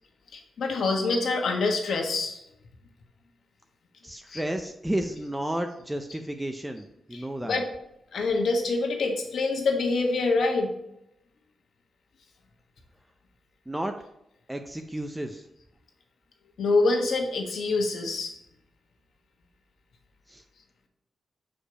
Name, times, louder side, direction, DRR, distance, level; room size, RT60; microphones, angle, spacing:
voice 1, 0.3-2.4 4.3-4.4 7.1-7.7 8.1-10.7 16.6-18.3, left 3 dB, 75° left, 2 dB, 1.5 m, -26 dB
voice 2, 4.0-7.6 13.7-14.0 14.5-15.5 20.3-20.4, right 1 dB, 10° right, 5 dB, 0.5 m, -32 dB
6.6 x 5.1 x 5.0 m, 0.82 s
wide cardioid pair, 110°, 0 cm